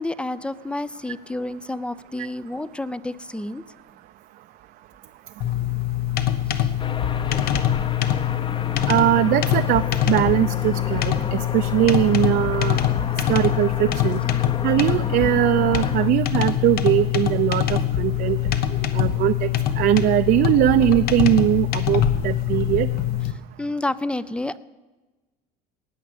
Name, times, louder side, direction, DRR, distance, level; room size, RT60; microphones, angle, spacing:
voice 1, 0.0-3.6 6.5-6.7 23.6-24.6, left 2 dB, 5° left, 17 dB, 0.4 m, -29 dB
sound 1, 5.4-23.3, left 11 dB, 60° left, 1.2 m, -23 dB
sound 2, 6.8-16.1, left 5 dB, 25° left, 0.9 m, -33 dB
voice 2, 8.9-12.8 13.3-14.2 14.6-18.4 18.9-19.5 19.8-22.9, right 14 dB, 55° right, 9 dB, 0.5 m, -20 dB
18.5 x 6.5 x 7.9 m, 1.2 s
cardioid pair, 115°, 18 cm